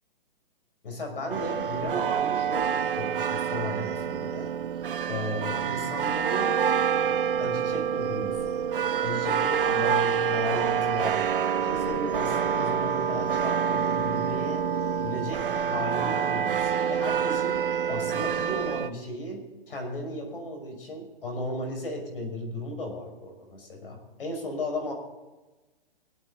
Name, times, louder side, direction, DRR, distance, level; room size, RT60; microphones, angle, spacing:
voice 1, 0.8-4.5 5.1-6.6 7.0-8.6 9.0-11.2 11.6-14.7 15.0-24.9, left 1 dB, 70° left, 3 dB, 6.1 m, -35 dB
sound 1, 1.3-18.9, right 7 dB, 65° right, 1.0 m, -27 dB
24.5 x 9.6 x 4.0 m, 1.1 s
hypercardioid pair, 170°, 29 cm